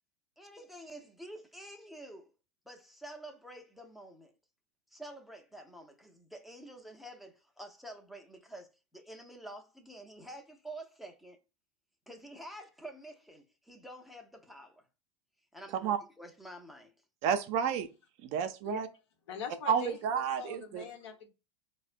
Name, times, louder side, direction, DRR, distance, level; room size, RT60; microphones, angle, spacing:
voice 1, 0.4-2.3 2.7-4.3 4.9-11.4 12.1-14.8 15.5-16.9, right 1 dB, ahead, 0.5 m, -48 dB
voice 2, 17.2-17.9 18.2-18.9 19.7-20.9, right 8 dB, 50° right, 0.5 m, -30 dB
voice 3, 19.3-21.3, left 7 dB, 75° left, 0.9 m, -42 dB
4.3 x 2.1 x 2.4 m
hypercardioid pair, 110°, 15 cm